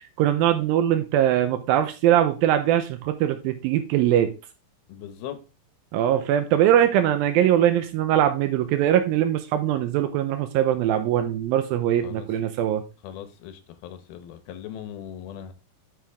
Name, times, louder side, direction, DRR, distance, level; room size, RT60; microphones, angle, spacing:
voice 1, 0.0-4.3 5.9-12.8, right 11 dB, 85° right, 2.1 m, -21 dB
voice 2, 4.9-5.4 12.0-12.3 13.0-15.5, left 10 dB, 70° left, 2.6 m, -39 dB
9.1 x 6.9 x 3.5 m
omnidirectional pair, 5.0 m